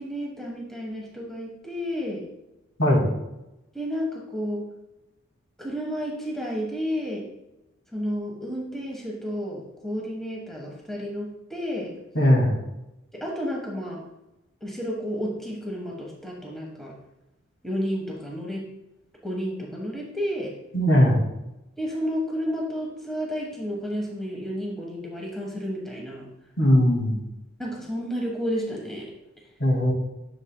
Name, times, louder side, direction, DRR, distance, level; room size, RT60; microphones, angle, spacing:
voice 1, 0.0-2.2 3.7-4.7 5.6-7.3 7.9-11.9 13.1-14.0 14.6-16.9 17.6-18.6 19.2-20.5 21.8-26.3 27.6-29.1, equal, ahead, -2 dB, 1.2 m, -31 dB
voice 2, 2.8-3.1 12.1-12.5 20.7-21.2 26.6-27.2 29.6-29.9, equal, 65° left, 0 dB, 2.1 m, -19 dB
10.5 x 6.9 x 2.2 m, 0.93 s
head